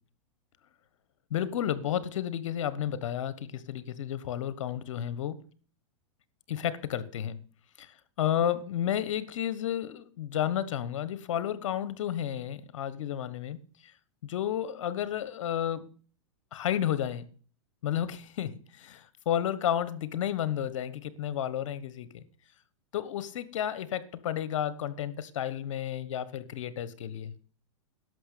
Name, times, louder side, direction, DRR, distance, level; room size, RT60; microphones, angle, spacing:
voice 1, 1.3-5.4 6.5-7.4 7.8-7.9 8.2-13.6 14.2-15.9 16.5-17.2 17.8-22.2 22.9-27.3, left 10 dB, 75° left, 1.2 m, -32 dB
11.5 x 6.5 x 8.4 m
hypercardioid pair, 130°, 16 cm